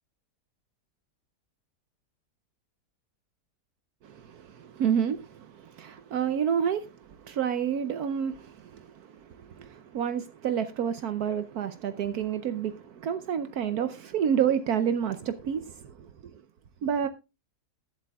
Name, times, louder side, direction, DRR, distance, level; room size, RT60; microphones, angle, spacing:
voice 1, 4.3-6.9 7.3-8.9 9.5-15.9 16.8-17.1, right 8 dB, 70° right, 1.2 m, -29 dB
21.0 x 7.6 x 2.3 m
omnidirectional pair, 1.7 m